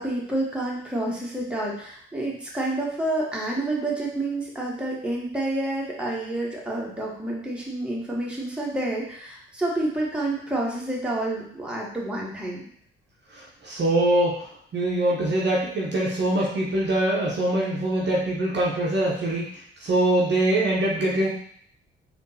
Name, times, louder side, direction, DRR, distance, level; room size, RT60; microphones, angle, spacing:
voice 1, 0.0-12.7, right 1 dB, 5° right, -4 dB, 1.1 m, -29 dB
voice 2, 13.3-14.5 14.7-21.3, right 1 dB, 40° right, -4 dB, 0.9 m, -23 dB
3.6 x 2.6 x 2.7 m, 0.62 s
hypercardioid pair, 45°, 29 cm